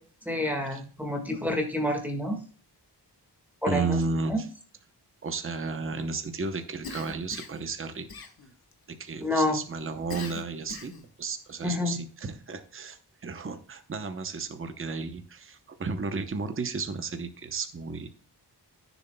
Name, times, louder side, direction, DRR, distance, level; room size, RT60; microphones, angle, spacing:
voice 1, 0.3-2.4 3.6-4.0 4.3-4.4 9.2-9.6 11.6-12.0, left 1 dB, 5° right, 1 dB, 1.7 m, -28 dB
voice 2, 3.7-4.5 5.2-8.3 8.9-10.9 11.2-18.1, right 4 dB, 30° right, 8 dB, 0.8 m, -33 dB
Cough, 6.8-7.7 8.1-8.7 10.1-11.1, left 4 dB, 60° left, 1.4 m, -41 dB
14.0 x 7.1 x 2.2 m, 0.41 s
wide cardioid pair, 155°, 40 cm